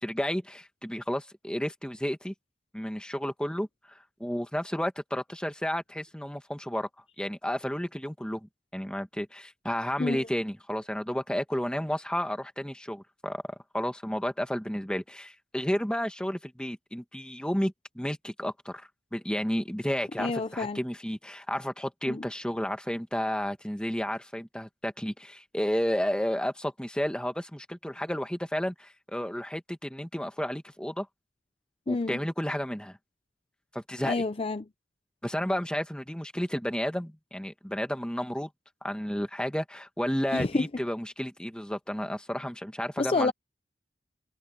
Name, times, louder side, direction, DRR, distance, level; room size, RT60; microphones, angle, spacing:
voice 1, 0.0-2.3 2.7-3.7 4.2-6.9 7.2-13.4 13.7-31.1 31.9-33.0 33.7-34.2 35.2-38.5 38.8-43.3, equal, 5° left, 1.8 m, -32 dB
voice 2, 20.2-20.8 22.1-22.2 31.9-32.2 34.0-34.7 40.3-40.6 43.0-43.3, left 3 dB, 35° left, 0.6 m, -28 dB
head